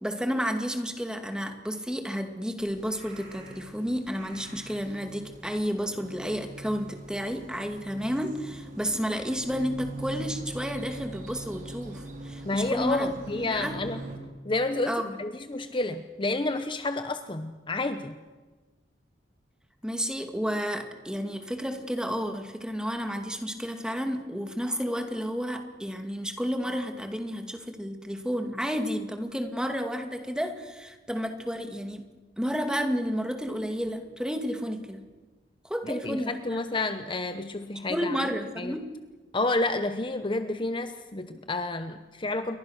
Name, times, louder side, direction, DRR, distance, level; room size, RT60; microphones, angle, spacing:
voice 1, 0.0-13.8 14.9-15.2 19.8-32.1 32.4-35.0 35.6-36.8 37.9-38.8, equal, 5° right, 6 dB, 2.3 m, -31 dB
sound 1, 2.6-14.2, right 2 dB, 50° right, 4.8 m, -42 dB
voice 2, 12.4-14.0 14.4-18.2 35.8-38.3 38.6-38.7 39.3-42.6, left 2 dB, 30° left, 9 dB, 1.0 m, -30 dB
28.5 x 23.5 x 6.6 m, 1.3 s
head